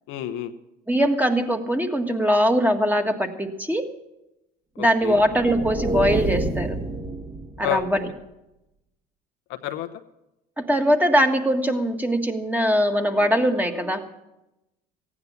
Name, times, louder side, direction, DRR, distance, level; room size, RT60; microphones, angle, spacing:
voice 1, 0.1-0.5 4.8-5.2 7.6-7.9 9.5-9.9, left 13 dB, 70° left, 8 dB, 0.9 m, -29 dB
voice 2, 0.9-3.9 4.8-6.8 7.6-8.1 10.6-14.0, equal, 10° right, 5 dB, 1.6 m, -21 dB
sound 1, 5.0-8.0, right 2 dB, 30° right, 1.8 m, -28 dB
15.0 x 9.6 x 7.1 m, 0.92 s
supercardioid pair, 75°, 21 cm